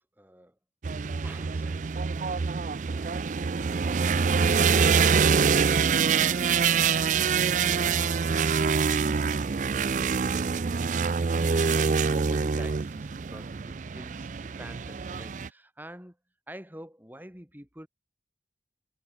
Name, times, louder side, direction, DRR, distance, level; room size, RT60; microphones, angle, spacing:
voice 1, 0.2-0.6 11.2-16.2 16.5-17.9, equal, 10° right, 3.6 m, -48 dB
sound 1, 0.8-15.5, right 6 dB, 45° right, 0.4 m, -25 dB
head